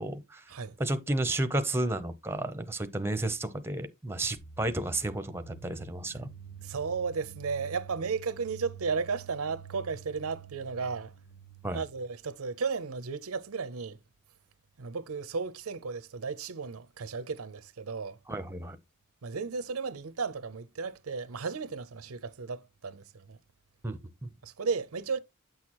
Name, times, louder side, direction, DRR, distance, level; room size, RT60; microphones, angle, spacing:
voice 1, 0.0-0.4 0.8-6.3 11.6-11.8 18.3-18.8 23.8-24.3, right 1 dB, 10° right, 0.7 m, -32 dB
sound 1, 4.4-12.1, right 7 dB, 85° left, 1.9 m, -48 dB
voice 2, 6.6-11.1 11.7-14.0 14.8-18.2 19.2-23.4 24.4-25.2, right 5 dB, 80° right, 0.7 m, -34 dB
9.1 x 6.3 x 3.0 m
head